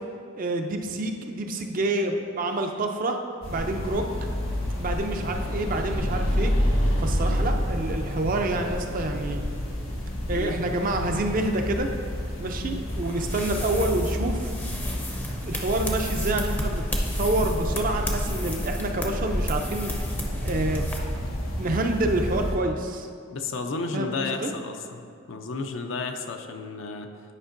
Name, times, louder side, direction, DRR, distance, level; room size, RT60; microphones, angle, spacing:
voice 1, 0.3-3.2 3.5-4.3 4.8-6.5 7.0-9.4 10.3-11.9 12.4-14.5 15.1-16.8 17.2-19.9 20.4-20.8 21.6-23.1 23.9-24.5, right 2 dB, 40° right, 4 dB, 0.4 m, -28 dB
sound 1, 3.4-22.5, equal, 85° left, 1.5 m, -29 dB
sound 2, 12.9-21.0, equal, 10° left, 0.5 m, -32 dB
voice 2, 23.3-27.1, left 3 dB, 65° left, 5 dB, 0.5 m, -32 dB
9.7 x 5.2 x 2.5 m, 2.4 s
head